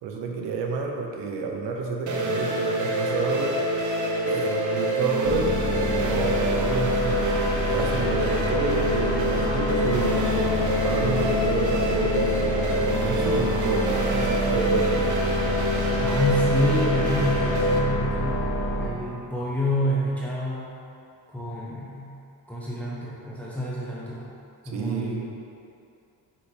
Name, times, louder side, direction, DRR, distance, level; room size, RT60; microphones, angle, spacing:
voice 1, 0.0-3.5 4.3-5.6 6.0-7.3 7.7-10.3 10.8-12.4 13.0-15.1 24.6-25.3, right 4 dB, 85° right, 1 dB, 0.7 m, -29 dB
sound 1, 2.1-17.8, equal, 45° right, 0.8 m, -26 dB
sound 2, 5.2-18.9, left 1 dB, 55° left, 0.9 m, -27 dB
voice 2, 16.0-18.5 18.7-20.7 21.3-22.1 22.5-24.2 24.6-25.3, left 1 dB, 5° left, -7 dB, 0.8 m, -28 dB
5.6 x 5.4 x 3.3 m, 2.6 s
cardioid pair, 95°, 42 cm